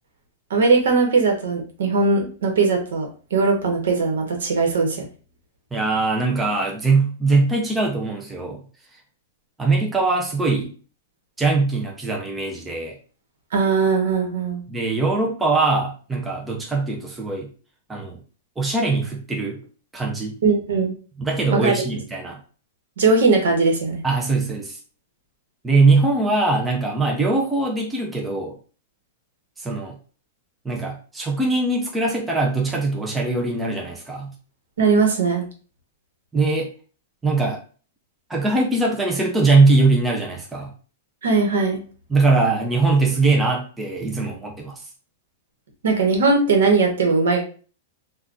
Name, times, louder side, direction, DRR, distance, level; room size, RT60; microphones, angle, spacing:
voice 1, 0.5-5.0 13.5-14.6 20.4-20.9 21.5-21.7 23.0-24.0 34.8-35.4 41.2-41.8 45.8-47.5, right 4 dB, 75° right, 2 dB, 1.0 m, -19 dB
voice 2, 5.7-8.6 9.6-10.7 11.4-12.9 14.7-17.5 17.9-18.2 18.6-19.6 19.9-20.4 21.2-22.4 24.0-24.8 25.6-28.6 29.6-29.9 30.7-34.3 36.3-36.7 37.2-37.6 38.3-40.7 42.1-44.8, right 3 dB, 5° right, 0 dB, 0.3 m, -21 dB
3.7 x 2.2 x 2.4 m, 0.38 s
supercardioid pair, 180°, 0 cm